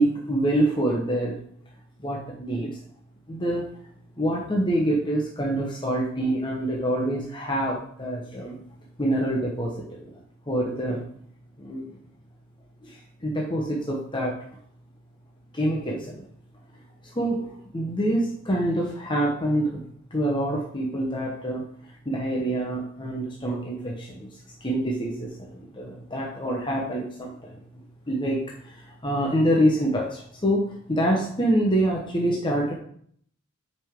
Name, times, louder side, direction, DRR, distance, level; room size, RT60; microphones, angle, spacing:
voice 1, 0.0-1.4 2.0-2.8 3.3-3.7 4.2-8.6 9.0-10.0 10.5-11.0 11.6-11.8 12.8-12.9 13.2-14.3 15.5-16.2 17.1-19.8 20.1-21.6 22.1-24.3 24.6-27.5 28.1-28.4 28.7-32.7, right 1 dB, 20° left, -2 dB, 1.0 m, -26 dB
9.0 x 5.3 x 3.7 m, 0.63 s
head